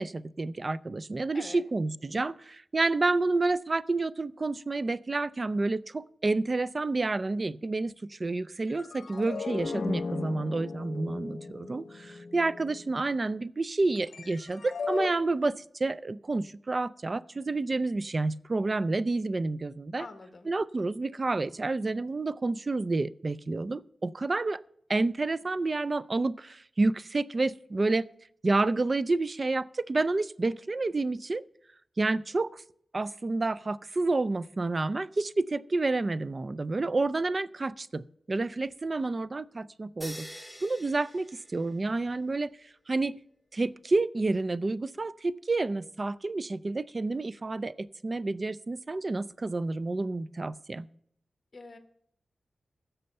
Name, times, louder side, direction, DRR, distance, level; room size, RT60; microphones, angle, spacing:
voice 1, 0.0-15.5 15.8-20.1 20.5-24.6 24.9-28.1 28.4-31.4 32.0-32.6 32.9-40.3 40.6-42.5 42.9-43.2 43.5-50.9, right 3 dB, 40° right, 0.4 m, -29 dB
sound 1, 8.7-13.0 14.0-15.1, left 4 dB, 75° left, 0.9 m, -37 dB
voice 2, 20.0-20.5 51.5-51.8, left 3 dB, 40° left, 1.4 m, -45 dB
sound 2, 40.0-42.1, equal, 10° right, 1.7 m, -46 dB
15.5 x 6.8 x 5.4 m
wide cardioid pair, 85°, 0 cm